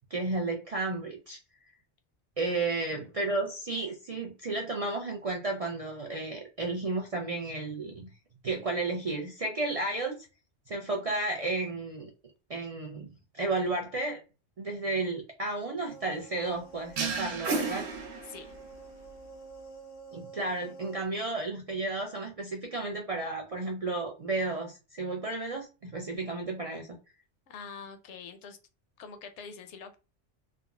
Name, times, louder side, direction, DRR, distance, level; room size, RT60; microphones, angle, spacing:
voice 1, 0.1-1.4 2.4-8.1 8.4-10.2 10.7-12.1 12.5-14.2 14.6-17.9 20.1-26.9, right 2 dB, 55° right, 0.4 m, -33 dB
voice 2, 2.4-3.0 18.3-18.5 27.5-28.6 29.0-30.0, left 6 dB, 90° left, 0.9 m, -45 dB
sound 1, 15.9-21.1, right 4 dB, 60° left, 0.5 m, -49 dB
sound 2, 17.0-18.7, right 4 dB, 75° right, 0.9 m, -32 dB
3.5 x 2.0 x 2.3 m
omnidirectional pair, 1.2 m